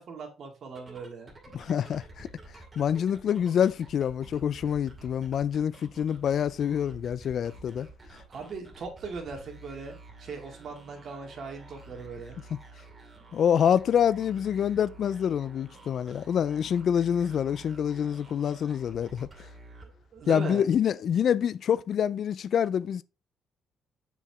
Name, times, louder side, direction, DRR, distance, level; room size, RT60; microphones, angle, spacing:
voice 1, 0.0-1.3 8.3-12.4 19.8-20.7, right 4 dB, 55° right, 2.1 m, -39 dB
sound 1, 0.8-20.4, right 2 dB, 30° right, 2.2 m, -50 dB
voice 2, 1.5-2.3 2.8-7.9 12.5-12.6 13.3-19.3 20.3-23.0, left 8 dB, 60° left, 0.3 m, -26 dB
6.9 x 4.8 x 3.4 m
cardioid pair, 85°, 0 cm